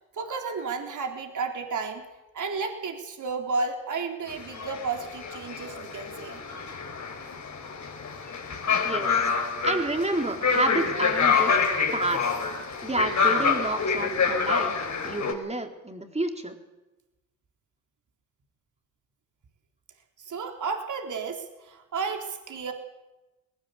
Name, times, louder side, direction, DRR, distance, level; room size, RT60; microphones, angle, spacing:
voice 1, 0.1-2.0 2.3-6.4 20.2-22.7, right 4 dB, 50° right, 4 dB, 3.9 m, -32 dB
sound 1, 4.3-15.3, left 5 dB, 45° left, 4.9 m, -27 dB
voice 2, 8.8-9.2 9.6-11.6 11.9-12.3 12.8-16.6, right 2 dB, 15° right, 5 dB, 3.9 m, -29 dB
19.5 x 18.5 x 8.3 m, 1.0 s
hypercardioid pair, 50°, 39 cm